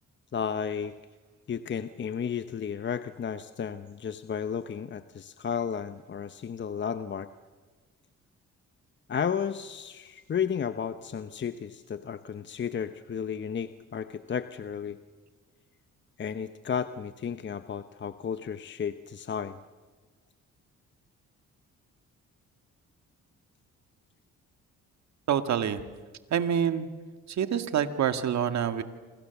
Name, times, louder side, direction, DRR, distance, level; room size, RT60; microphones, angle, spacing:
voice 1, 0.3-0.9 1.5-7.3 9.1-15.0 16.2-19.6, left 7 dB, 40° left, 11 dB, 0.9 m, -33 dB
voice 2, 25.3-25.8 26.3-26.9 27.3-28.8, right 8 dB, 65° right, 9 dB, 1.9 m, -26 dB
27.5 x 26.0 x 7.1 m, 1.4 s
cardioid pair, 90°, 30 cm